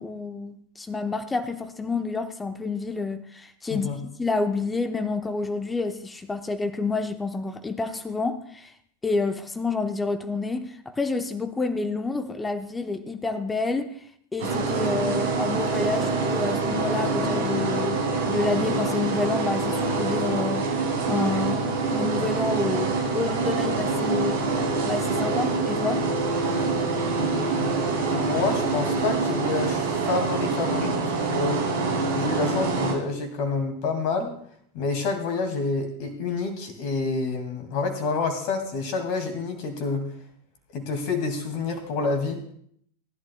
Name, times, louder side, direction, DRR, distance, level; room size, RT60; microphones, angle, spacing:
voice 1, 0.0-3.9 4.2-8.7 9.0-14.0 14.3-18.0 18.3-24.4 24.8-26.1, left 3 dB, 10° left, 9 dB, 1.0 m, -29 dB
sound 1, 14.4-32.9, right 3 dB, 60° right, 3.2 m, -25 dB
voice 2, 27.1-31.6 32.1-34.4 34.7-40.0 40.7-42.4, left 4 dB, 45° left, 5 dB, 2.5 m, -28 dB
18.5 x 11.5 x 2.3 m, 0.64 s
figure-of-eight pair, 90°, 0 cm